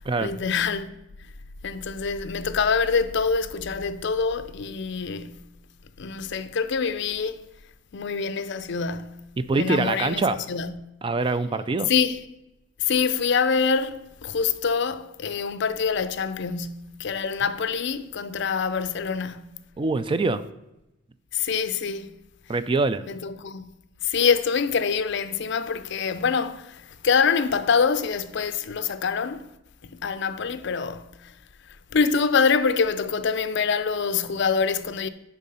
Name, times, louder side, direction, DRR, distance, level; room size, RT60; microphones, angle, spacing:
voice 1, 0.2-1.0 1.6-5.5 6.0-7.4 7.9-9.2 9.5-10.8 11.9-12.2 12.8-19.6 21.3-22.1 23.1-23.7 24.0-29.5 29.8-31.3 31.9-35.1, left 5 dB, 60° left, 0.5 m, -25 dB
voice 2, 9.4-10.4 11.0-11.9 19.8-20.4 22.5-23.0, right 3 dB, 25° right, 0.4 m, -24 dB
10.5 x 3.6 x 5.5 m
head